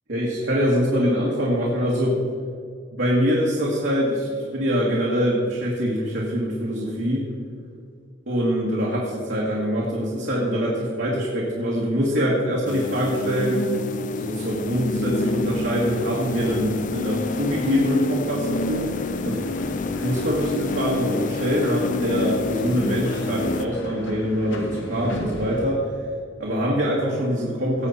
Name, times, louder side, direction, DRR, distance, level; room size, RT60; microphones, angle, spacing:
voice 1, 0.1-2.2 2.9-7.3 8.3-13.7 14.2-18.9 19.2-19.5 20.0-25.8 26.4-27.9, equal, 65° right, -5 dB, 2.0 m, -24 dB
sound 1, 12.7-23.7, left 3 dB, 45° left, 0.5 m, -28 dB
sound 2, 18.7-25.6, equal, 80° left, 1.8 m, -37 dB
18.0 x 7.5 x 4.3 m, 2.3 s
head